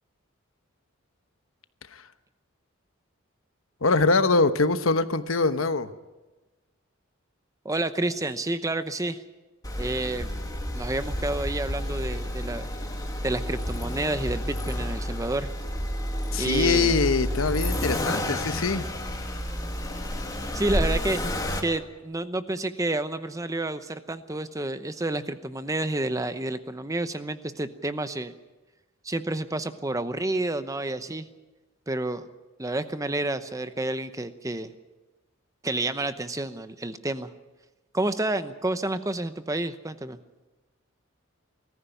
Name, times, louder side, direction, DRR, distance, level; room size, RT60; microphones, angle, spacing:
voice 1, 3.8-5.9 16.3-18.8, left 3 dB, 75° left, 11 dB, 1.0 m, -23 dB
voice 2, 7.6-9.2 9.8-10.3 10.7-12.7 13.2-15.5 16.4-16.9 20.5-21.2 21.6-28.3 29.0-31.3 31.9-32.3 32.6-34.7 35.6-37.3 37.9-40.2, right 2 dB, 15° right, 11 dB, 0.9 m, -29 dB
Accelerating revving vroom, 9.6-21.6, left 1 dB, 20° left, 2.1 m, -30 dB
21.0 x 14.5 x 9.2 m, 1.2 s
head